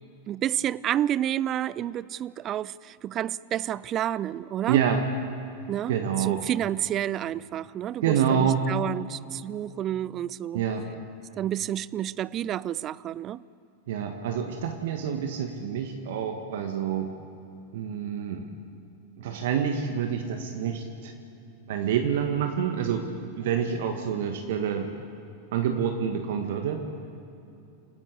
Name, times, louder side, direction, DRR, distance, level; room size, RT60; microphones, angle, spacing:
voice 1, 0.3-4.8 5.7-5.9 6.2-10.6 11.4-13.4, right 11 dB, 30° right, 21 dB, 0.5 m, -30 dB
voice 2, 4.7-5.0 5.9-6.4 8.0-8.6 10.5-10.8 13.9-17.1 17.7-18.5 19.2-21.1 21.7-23.1 23.4-24.9 25.5-26.8, right 8 dB, 55° right, 5 dB, 1.6 m, -27 dB
28.0 x 13.5 x 8.3 m, 2.8 s
figure-of-eight pair, 90°, 0 cm